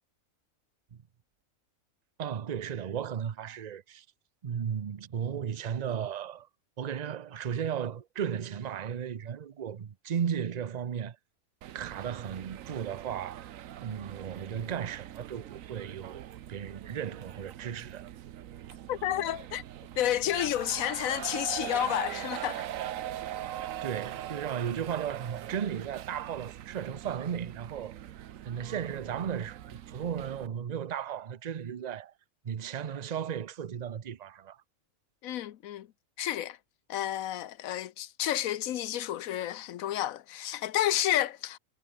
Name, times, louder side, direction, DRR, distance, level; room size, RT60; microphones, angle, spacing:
voice 1, 2.2-4.0 4.4-6.5 6.8-11.2 11.7-13.5 13.8-18.1 23.8-28.1 28.4-32.1 32.4-34.6, right 8 dB, 40° right, 0.6 m, -35 dB
sound 1, 11.6-30.5, right 12 dB, 75° right, 1.1 m, -42 dB
voice 2, 18.9-19.6 20.0-22.7 35.2-35.9 36.2-36.6 36.9-41.6, left 12 dB, 80° left, 1.1 m, -30 dB
omnidirectional pair, 1.4 m